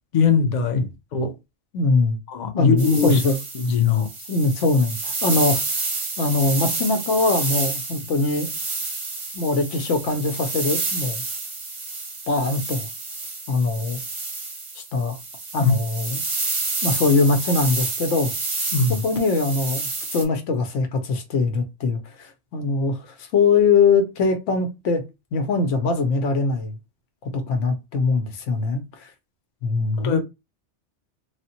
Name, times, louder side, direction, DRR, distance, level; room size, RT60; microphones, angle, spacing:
voice 1, 0.1-1.3 2.3-3.2 3.5-4.1 15.6-15.7 18.7-19.0 30.0-30.2, left 5 dB, 55° left, 0.5 m, -21 dB
voice 2, 1.7-2.2 2.6-3.4 4.3-5.6 6.2-8.5 9.3-11.2 12.3-12.9 13.5-14.0 14.9-15.2 15.5-16.2 16.8-18.3 19.0-25.0 25.3-26.8 27.2-29.1 29.6-30.2, left 3 dB, 90° left, 1.0 m, -22 dB
sound 1, 2.8-20.2, right 3 dB, 35° right, 0.6 m, -29 dB
3.3 x 2.1 x 2.8 m
omnidirectional pair, 1.2 m